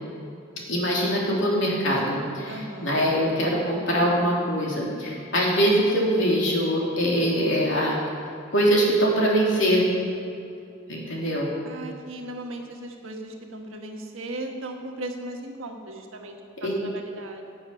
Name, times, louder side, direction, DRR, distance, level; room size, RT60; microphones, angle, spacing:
voice 1, 0.7-8.0 8.5-9.8 10.9-11.5 16.6-16.7, equal, 65° left, -3 dB, 2.9 m, -23 dB
voice 2, 2.5-3.0 11.6-17.4, right 2 dB, 80° right, 2 dB, 1.5 m, -37 dB
15.5 x 7.7 x 5.7 m, 2.6 s
head